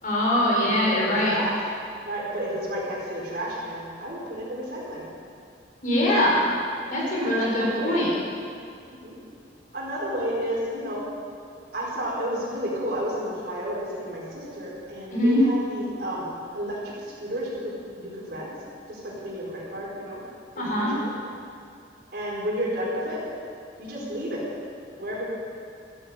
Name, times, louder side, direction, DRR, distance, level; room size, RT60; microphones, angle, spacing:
voice 1, 0.0-1.3 5.8-6.4 6.9-8.1 15.1-15.4 20.6-20.9, left 1 dB, 45° left, -4 dB, 4.8 m, -22 dB
voice 2, 0.8-1.5 2.0-5.1 7.1-8.0 8.8-9.2 9.7-11.0 11.7-18.5 18.9-20.2 20.5-21.1 22.1-23.2 23.8-24.4 25.0-25.3, equal, 60° right, -5 dB, 4.6 m, -31 dB
14.5 x 14.5 x 5.1 m, 2.4 s
head